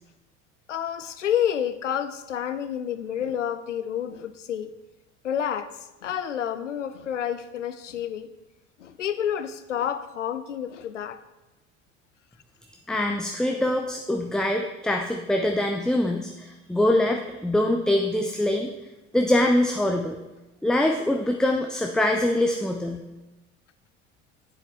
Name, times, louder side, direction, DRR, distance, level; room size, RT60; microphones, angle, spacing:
voice 1, 0.7-4.7 5.2-5.7 6.0-8.3 8.8-11.2, left 9 dB, 80° left, 12 dB, 0.6 m, -29 dB
voice 2, 12.9-18.7 19.1-20.2 20.6-23.0, left 1 dB, ahead, 3 dB, 0.5 m, -24 dB
10.0 x 7.7 x 3.5 m, 1.1 s
figure-of-eight pair, 65°, 36 cm